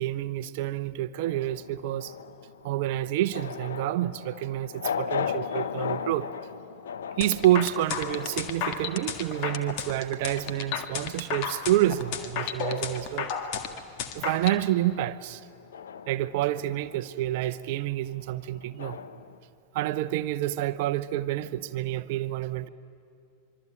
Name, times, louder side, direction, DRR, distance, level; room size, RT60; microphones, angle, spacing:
voice 1, 0.0-2.1 2.6-6.3 7.2-13.3 14.2-15.4 16.1-19.0 19.7-22.7, right 14 dB, 50° right, 0.8 m, -28 dB
sound 1, 1.2-13.8 14.1-19.4, left 7 dB, 65° left, 1.0 m, -38 dB
sound 2, 7.2-14.6, left 7 dB, 45° left, 1.8 m, -32 dB
25.5 x 24.0 x 8.9 m
figure-of-eight pair, 90°, 0 cm